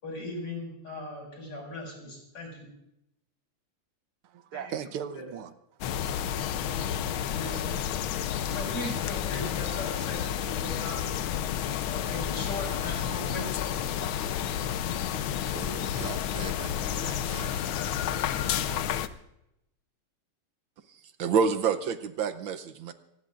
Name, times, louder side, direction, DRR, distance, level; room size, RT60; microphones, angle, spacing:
voice 1, 0.0-2.7 4.5-4.7 5.2-5.3 7.3-7.7 8.5-11.0 11.9-13.5, left 2 dB, 55° left, 6.5 m, -38 dB
voice 2, 4.2-5.5 6.2-6.3 15.4-17.8 18.2-18.8, right 8 dB, 85° right, 1.8 m, -40 dB
sound 1, 5.8-19.1, left 9 dB, 75° left, 1.5 m, -31 dB
voice 3, 20.9-22.9, right 6 dB, 70° right, 1.5 m, -28 dB
26.0 x 19.0 x 2.5 m
omnidirectional pair, 2.3 m